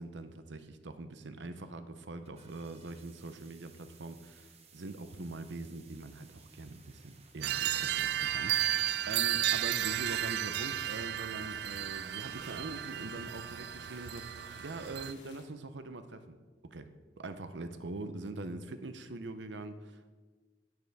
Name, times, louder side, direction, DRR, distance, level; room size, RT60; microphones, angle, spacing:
voice 1, 0.0-16.4 16.6-16.9 17.2-20.2, right 2 dB, 80° right, 10 dB, 0.7 m, -43 dB
sound 1, 2.1-9.2, right 5 dB, 35° right, 0.9 m, -61 dB
sound 2, 7.4-15.1, right 12 dB, 65° right, 0.3 m, -33 dB
sound 3, 10.3-15.4, left 5 dB, 85° left, 1.2 m, -57 dB
10.5 x 9.4 x 3.5 m, 1.4 s
head